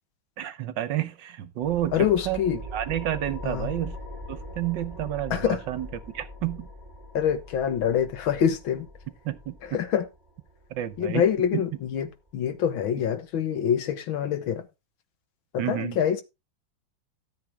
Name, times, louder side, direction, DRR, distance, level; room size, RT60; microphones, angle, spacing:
voice 1, 0.4-2.0 2.2-4.0 4.3-5.9 6.1-6.7 9.2-9.6 10.7-11.2 11.5-11.7 15.6-16.0, right 12 dB, 70° right, 1.4 m, -30 dB
sound 1, 1.6-12.7, equal, 15° right, 2.7 m, -42 dB
voice 2, 1.9-2.6 3.4-3.7 5.3-5.6 7.1-8.9 9.7-10.0 11.0-12.1 12.3-14.6 15.5-16.2, left 9 dB, 75° left, 1.9 m, -25 dB
13.5 x 7.4 x 3.6 m
omnidirectional pair, 2.2 m